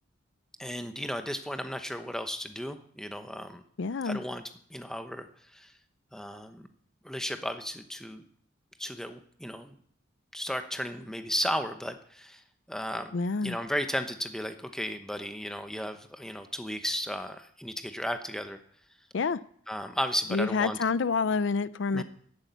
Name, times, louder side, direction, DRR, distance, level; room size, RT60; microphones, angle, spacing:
voice 1, 0.6-3.6 4.0-4.4 4.7-5.7 6.1-6.7 7.0-8.2 8.8-9.8 10.3-12.4 12.7-13.1 13.4-18.6 19.7-20.8 21.9-22.0, equal, 5° left, 0.9 m, -34 dB
voice 2, 3.8-4.2 13.1-13.6 19.1-19.4 20.3-22.0, left 4 dB, 65° left, 0.5 m, -28 dB
11.5 x 11.0 x 8.1 m
head